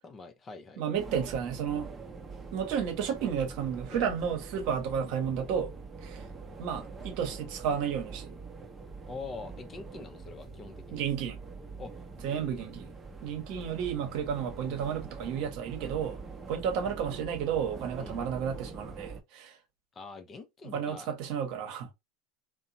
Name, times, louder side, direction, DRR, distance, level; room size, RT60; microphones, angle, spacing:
voice 1, 0.0-0.8 3.9-4.1 9.1-11.0 11.8-11.9 12.3-12.8 18.0-18.2 20.0-21.1, left 4 dB, 30° left, 0.5 m, -44 dB
voice 2, 0.8-1.9 2.5-5.7 6.0-6.3 6.6-8.4 10.9-11.4 12.2-12.9 13.2-16.2 16.5-19.6 20.6-21.9, right 7 dB, 60° right, 0.9 m, -32 dB
sound 1, 0.9-19.2, right 4 dB, 25° right, 0.7 m, -44 dB
2.7 x 2.1 x 2.6 m
hypercardioid pair, 90°, 0 cm